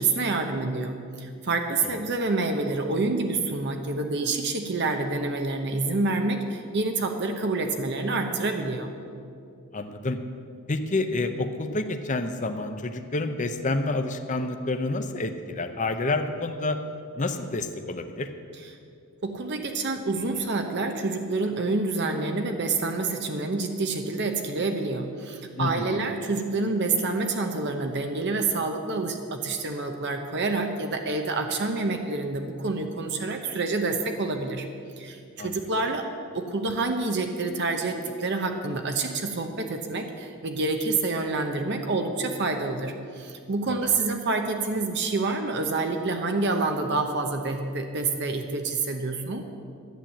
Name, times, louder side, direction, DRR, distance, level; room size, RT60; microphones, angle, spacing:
voice 1, 0.0-8.9 19.2-34.6 35.0-36.0 36.3-49.4, right 3 dB, 50° right, 4 dB, 0.9 m, -27 dB
voice 2, 9.7-10.2 10.7-16.8 17.2-18.3 25.6-26.0 35.4-35.6 43.7-43.9, left 2 dB, 35° left, 7 dB, 0.7 m, -29 dB
11.5 x 8.8 x 7.5 m, 2.4 s
head